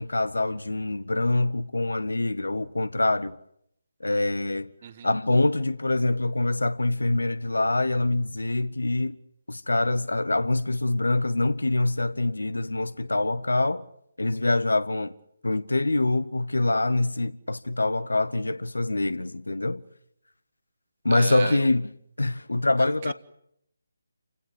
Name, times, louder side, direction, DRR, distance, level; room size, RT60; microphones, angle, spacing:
voice 1, 0.0-3.4 4.0-4.7 5.0-9.2 9.5-13.8 14.2-15.1 15.4-19.8 21.0-21.9 22.2-23.1, left 2 dB, 65° left, 1.3 m, -25 dB
voice 2, 21.1-21.7 22.8-23.1, right 9 dB, 30° right, 1.1 m, -36 dB
28.5 x 17.0 x 9.9 m
figure-of-eight pair, 150°, 0 cm